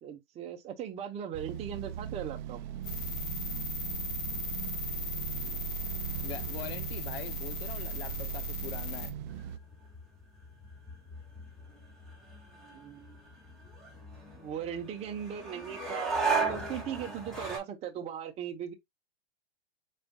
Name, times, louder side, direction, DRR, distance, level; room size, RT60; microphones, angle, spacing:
voice 1, 0.0-2.6 12.7-13.2 14.3-18.7, right 9 dB, 20° right, 0.9 m, -38 dB
sound 1, 1.3-9.6, right 10 dB, 45° right, 0.6 m, -39 dB
sound 2, 2.8-9.1, left 2 dB, 50° left, 2.2 m, -38 dB
voice 2, 6.2-9.1, left 10 dB, 70° left, 0.8 m, -43 dB
sound 3, 9.2-17.6, right 4 dB, ahead, 1.8 m, -37 dB
5.0 x 4.2 x 2.3 m
hypercardioid pair, 145°, 31 cm